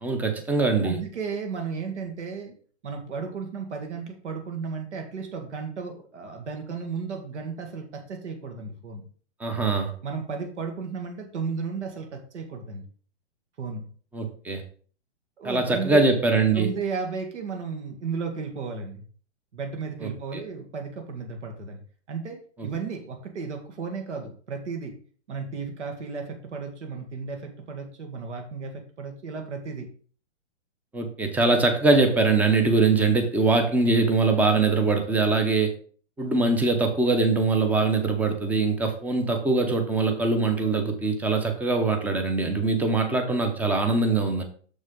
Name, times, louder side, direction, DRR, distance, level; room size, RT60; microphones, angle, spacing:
voice 1, 0.0-1.0 9.4-9.9 14.1-14.6 15.4-16.7 20.0-20.4 30.9-35.7 36.2-44.4, right 3 dB, 5° right, 6 dB, 0.6 m, -22 dB
voice 2, 0.8-2.5 2.8-9.0 10.0-12.8 13.6-13.9 15.4-16.0 16.5-19.0 19.5-21.8 22.1-24.9 25.3-29.9 40.6-40.8, right 5 dB, 75° right, 4 dB, 1.9 m, -34 dB
6.7 x 6.3 x 3.8 m, 0.43 s
hypercardioid pair, 145°, 35 cm